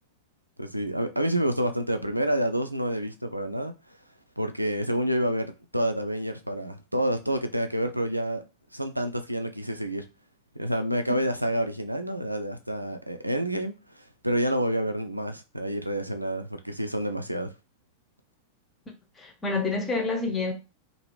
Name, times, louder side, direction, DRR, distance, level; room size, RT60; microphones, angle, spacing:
voice 1, 0.6-3.7 4.4-8.4 8.7-10.0 10.6-17.5, equal, 90° right, 0.4 m, -28 dB
voice 2, 19.2-20.5, left 3 dB, 20° left, 0.8 m, -28 dB
2.7 x 2.6 x 3.1 m
figure-of-eight pair, 90°, 0 cm